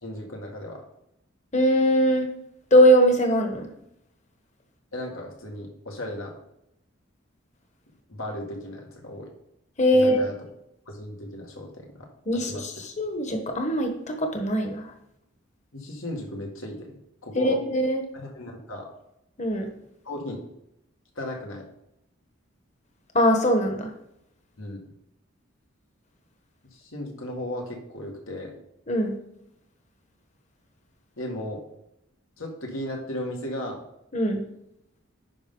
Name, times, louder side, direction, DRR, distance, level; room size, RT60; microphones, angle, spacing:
voice 1, 0.0-0.8 4.9-6.3 8.1-9.3 9.9-10.3 10.9-12.1 12.5-12.6 15.7-17.0 17.2-17.6 18.1-18.9 20.0-20.4 21.2-21.7 24.6-24.8 26.7-28.5 31.2-31.6 32.4-33.8, left 1 dB, 80° left, 1 dB, 1.9 m, -35 dB
voice 2, 1.5-2.3 2.7-3.7 9.8-10.2 12.3-14.9 17.3-18.0 19.4-19.7 23.1-23.9 28.9-29.2 34.1-34.4, equal, 35° left, 4 dB, 1.2 m, -21 dB
9.9 x 5.4 x 3.8 m, 0.80 s
head